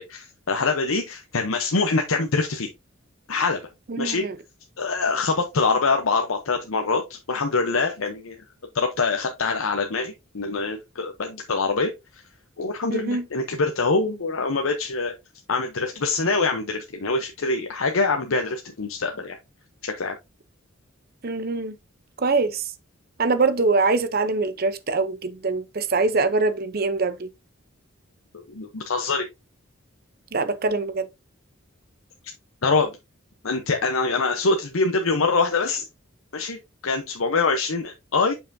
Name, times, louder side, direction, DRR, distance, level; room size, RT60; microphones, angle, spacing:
voice 1, 0.0-2.7 3.3-3.6 4.0-4.3 4.8-8.4 8.7-12.2 12.6-15.1 15.5-19.4 19.8-20.1 28.3-29.3 32.6-32.9 33.4-35.9 36.3-38.3, left 3 dB, 75° left, 0.8 m, -24 dB
voice 2, 3.9-4.4 12.9-13.2 21.2-21.7 22.2-22.6 23.2-27.3 30.3-31.1, right 3 dB, 45° right, 0.7 m, -23 dB
6.9 x 5.6 x 2.7 m
head